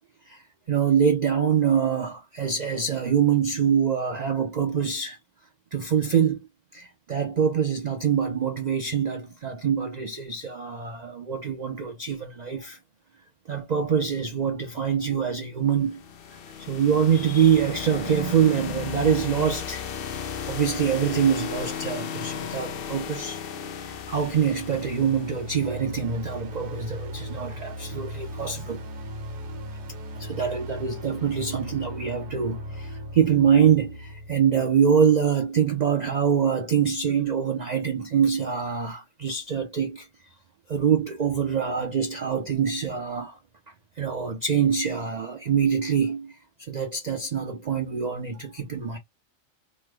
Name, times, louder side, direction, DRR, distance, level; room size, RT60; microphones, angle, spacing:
voice 1, 0.7-5.2 5.7-6.5 6.7-12.8 13.5-16.0 16.6-19.8 20.1-20.2 20.5-23.4 23.9-28.8 30.1-40.1 40.7-43.4 44.0-46.4 46.7-49.0, right 7 dB, 85° right, 0.3 m, -24 dB
sound 1, 15.8-25.7, left 7 dB, 65° left, 0.6 m, -35 dB
sound 2, 24.3-35.3, equal, 55° right, 0.7 m, -38 dB
3.2 x 2.0 x 3.2 m
omnidirectional pair, 1.4 m